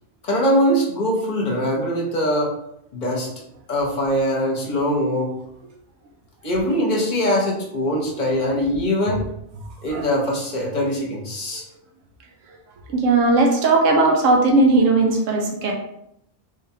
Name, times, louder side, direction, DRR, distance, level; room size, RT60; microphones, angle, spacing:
voice 1, 0.2-2.6 2.9-3.3 3.7-5.3 6.4-9.2 9.8-11.6, equal, 40° left, -2 dB, 0.9 m, -22 dB
voice 2, 12.9-15.7, right 3 dB, 90° right, 2 dB, 1.0 m, -17 dB
3.5 x 3.4 x 2.8 m, 0.76 s
omnidirectional pair, 1.3 m